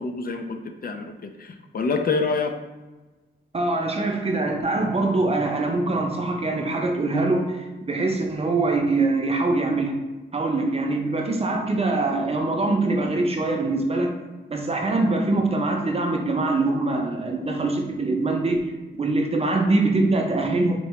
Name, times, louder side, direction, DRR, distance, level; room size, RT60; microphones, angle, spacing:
voice 1, 0.0-2.6, left 4 dB, 45° left, 6 dB, 0.4 m, -27 dB
voice 2, 3.5-9.9 10.3-14.1 14.5-18.7 19.0-20.7, right 2 dB, 30° right, 2 dB, 0.6 m, -23 dB
4.5 x 2.8 x 3.1 m, 1.2 s
cardioid pair, 95°, 20 cm